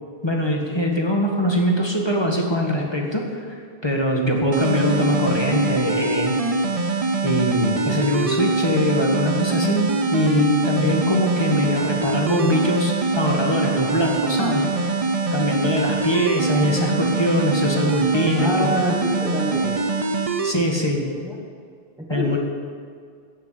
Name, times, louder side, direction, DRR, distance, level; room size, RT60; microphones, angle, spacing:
voice 1, 0.2-3.6 3.8-6.3 7.2-9.8 10.1-14.9 15.3-18.7 20.4-21.0 22.1-22.4, left 1 dB, 25° left, 0 dB, 1.8 m, -22 dB
sound 1, 4.5-20.5, right 3 dB, 40° right, 0.7 m, -23 dB
voice 2, 18.4-19.8 21.1-21.4 22.0-22.4, equal, 5° right, -1 dB, 1.2 m, -27 dB
15.5 x 6.6 x 8.5 m, 2.1 s
omnidirectional pair, 1.1 m